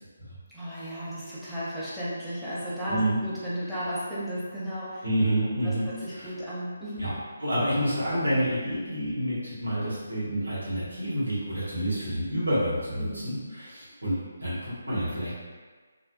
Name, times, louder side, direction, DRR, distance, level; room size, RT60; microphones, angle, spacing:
voice 1, 0.5-5.0 5.6-7.1 13.0-13.2, equal, ahead, -12 dB, 0.6 m, -34 dB
voice 2, 2.9-3.2 5.0-6.3 7.0-15.5, equal, 90° right, -9 dB, 1.1 m, -28 dB
2.5 x 2.5 x 2.3 m, 1.5 s
figure-of-eight pair, 160°, 0 cm